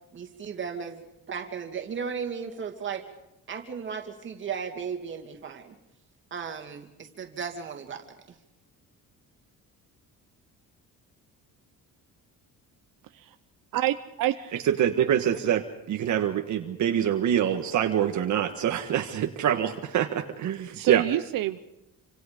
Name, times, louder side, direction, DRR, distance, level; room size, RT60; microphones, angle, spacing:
voice 1, 0.1-3.0 3.5-5.8 6.3-8.4, right 6 dB, 35° right, 4 dB, 2.7 m, -36 dB
voice 2, 13.7-14.3 20.7-21.6, right 14 dB, 75° right, 9 dB, 1.0 m, -27 dB
voice 3, 14.7-21.0, right 10 dB, 55° right, 5 dB, 1.5 m, -25 dB
28.0 x 26.0 x 5.2 m, 0.88 s
cardioid pair, 175°, 34 cm